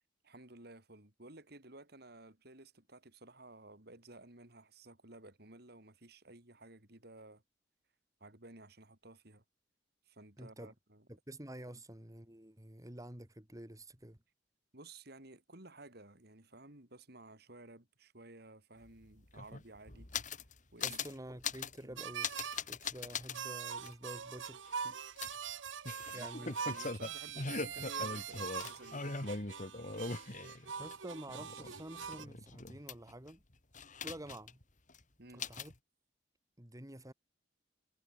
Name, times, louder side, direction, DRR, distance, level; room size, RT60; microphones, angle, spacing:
voice 1, 0.2-7.4 8.2-9.4 10.1-11.1 11.7-11.8 14.7-20.4 20.7-21.0 21.8-22.0 26.1-29.2 35.2-35.5, right 2 dB, 55° right, 3.7 m, -55 dB
voice 2, 10.4-10.7 11.1-14.2 20.8-22.3 22.7-25.0 26.1-26.6 30.8-33.4 34.0-34.6 35.3-35.7 36.6-37.1, right 1 dB, 20° right, 2.4 m, -49 dB
sound 1, 18.8-18.9 19.1-20.5 20.8-21.1 21.4-21.8 22.2-23.4 23.8-23.9 25.2-30.9 31.3-33.3 33.7-34.6 34.9-35.0 35.4-35.7, left 4 dB, 40° left, 2.4 m, -41 dB
sound 2, 22.0-22.6 23.3-32.2, right 7 dB, 90° right, 1.2 m, -43 dB
head